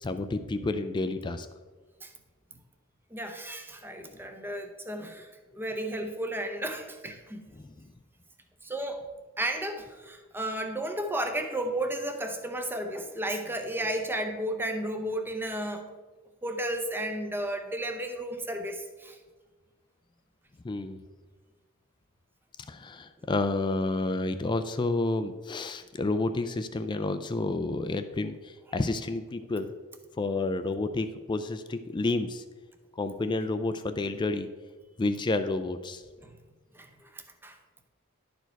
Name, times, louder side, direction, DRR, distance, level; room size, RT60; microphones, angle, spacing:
voice 1, 0.0-1.5 7.6-7.9 20.6-21.0 22.7-29.7 30.2-32.4 33.0-34.5 35.0-36.0, left 2 dB, 20° left, 9 dB, 0.3 m, -30 dB
voice 2, 3.1-5.3 5.6-7.4 8.6-9.0 9.4-15.9 16.4-19.2 36.2-36.4 36.7-37.6, right 1 dB, 10° right, 6 dB, 0.7 m, -33 dB
11.0 x 4.6 x 4.5 m, 1.3 s
head